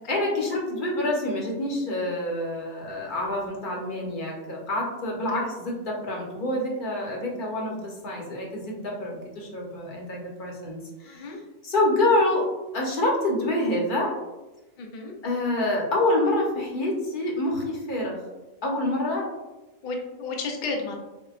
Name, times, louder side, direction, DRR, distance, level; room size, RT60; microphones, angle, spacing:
voice 1, 0.1-11.4 11.6-12.4 12.7-14.1 15.2-18.2 18.6-19.3, left 1 dB, 40° left, -2 dB, 0.9 m, -27 dB
voice 2, 11.0-11.4 14.8-15.1 19.8-20.9, left 3 dB, 60° left, 1 dB, 0.5 m, -32 dB
5.4 x 2.2 x 2.4 m, 1.1 s
omnidirectional pair, 1.5 m